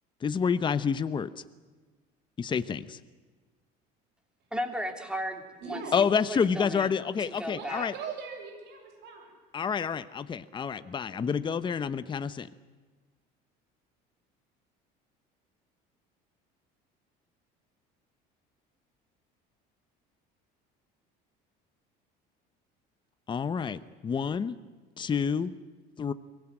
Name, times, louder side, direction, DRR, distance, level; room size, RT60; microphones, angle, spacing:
voice 1, 0.2-1.3 2.4-3.0 5.9-7.9 9.5-12.5 23.3-24.6 25.0-25.5 26.0-26.1, left 6 dB, 25° left, 13 dB, 0.8 m, -28 dB
voice 2, 4.5-6.9 7.2-7.9, equal, 5° right, 5 dB, 2.9 m, -36 dB
voice 3, 5.6-6.0 7.5-9.3, right 5 dB, 65° right, 1 dB, 7.1 m, -40 dB
23.0 x 18.0 x 9.0 m, 1.4 s
cardioid pair, 125°, 19 cm